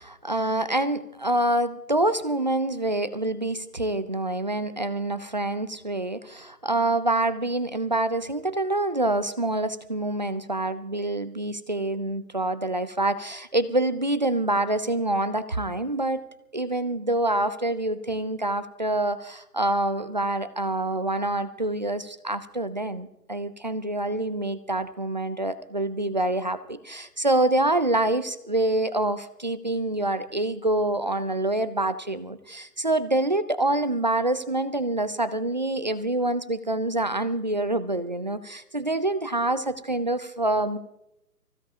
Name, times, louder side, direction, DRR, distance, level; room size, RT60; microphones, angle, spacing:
voice 1, 0.0-16.2 16.5-40.8, right 1 dB, 30° right, 13 dB, 0.5 m, -26 dB
24.5 x 16.0 x 2.8 m, 0.85 s
figure-of-eight pair, 140°, 49 cm